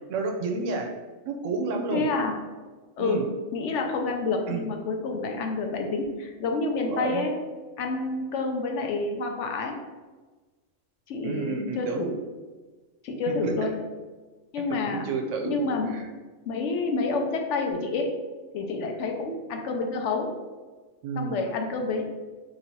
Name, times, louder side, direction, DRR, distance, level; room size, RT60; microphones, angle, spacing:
voice 1, 0.1-0.9 1.3-2.0 3.0-3.2 4.5-4.7 6.9-7.2 11.2-12.1 13.3-13.5 14.7-15.6 15.9-16.0 21.0-21.4, right 4 dB, 90° right, 3 dB, 1.0 m, -30 dB
voice 2, 1.9-2.3 3.0-7.3 7.8-9.8 11.1-12.2 13.0-13.8 14.5-15.1 15.4-16.0 16.4-18.1 18.5-20.4 21.1-22.0, left 3 dB, 75° left, 3 dB, 0.9 m, -28 dB
3.0 x 2.7 x 4.4 m, 1.3 s
omnidirectional pair, 1.3 m